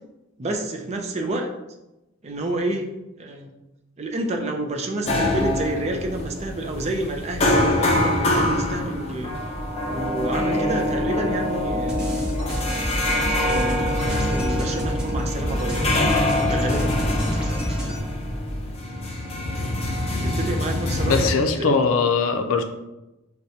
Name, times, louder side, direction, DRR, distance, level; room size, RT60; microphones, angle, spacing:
voice 1, 0.4-1.5 2.2-2.9 3.2-3.5 4.0-9.3 9.9-12.0 13.3-15.9 16.4-17.1 20.2-21.8, right 2 dB, 35° right, 3 dB, 0.5 m, -29 dB
sound 1, 5.1-21.3, left 1 dB, 30° left, 0.6 m, -24 dB
sound 2, 11.6-18.0, equal, 5° right, 0.8 m, -29 dB
voice 2, 21.1-22.6, left 4 dB, 90° left, 7 dB, 0.4 m, -20 dB
6.3 x 2.2 x 2.8 m, 0.97 s
head